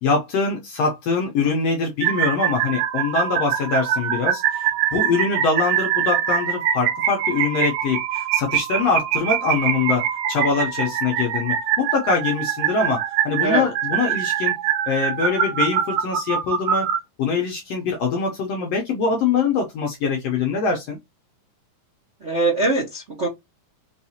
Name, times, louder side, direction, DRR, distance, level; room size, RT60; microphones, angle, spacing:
voice 1, 0.0-14.5 14.9-16.9 17.2-21.0, left 4 dB, 70° left, 1.6 m, -23 dB
sound 1, 2.0-17.0, right 10 dB, 85° right, 2.4 m, -24 dB
voice 2, 22.2-23.3, right 2 dB, 70° right, 0.6 m, -22 dB
5.5 x 2.6 x 2.8 m
omnidirectional pair, 3.8 m